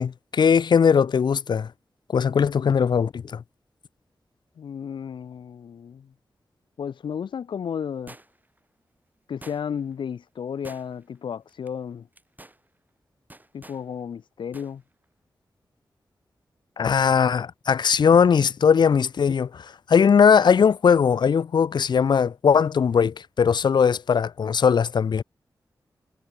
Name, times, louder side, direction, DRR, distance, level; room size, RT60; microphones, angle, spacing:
voice 1, 0.0-1.7 2.1-3.4 16.8-25.2, left 6 dB, 65° left, 0.4 m, -19 dB
voice 2, 4.6-6.1 6.8-8.2 9.3-12.1 13.5-14.8, left 7 dB, 85° left, 0.8 m, -33 dB
sound 1, 8.1-8.6 9.4-9.9 10.6-11.2 11.5-11.7 12.1-12.6 13.3-13.8 14.5-14.7 15.0-15.1, right 1 dB, 20° right, 5.5 m, -47 dB
cardioid pair, 45°, 8 cm